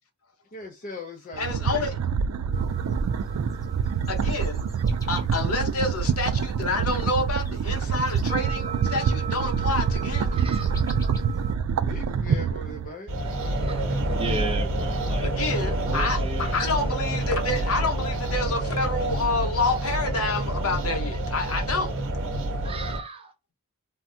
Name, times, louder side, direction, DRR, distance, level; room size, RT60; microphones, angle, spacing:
voice 1, 0.5-2.0 11.8-13.1 13.4-13.5, left 2 dB, 40° left, 0.5 m, -39 dB
sound 1, 1.3-12.9, right 6 dB, 75° right, 0.3 m, -26 dB
voice 2, 1.4-1.9 4.1-4.6 5.1-10.4 15.2-21.9, left 3 dB, 75° left, 0.9 m, -28 dB
sound 2, 2.5-11.5, right 6 dB, 15° left, 0.9 m, -41 dB
voice 3, 10.3-11.1 13.2-16.8 19.8-19.9 20.2-20.5 21.4-21.7 22.6-23.3, right 2 dB, 25° right, 0.6 m, -37 dB
sound 3, 13.1-23.0, right 1 dB, 60° right, 0.7 m, -28 dB
3.4 x 2.1 x 2.6 m
head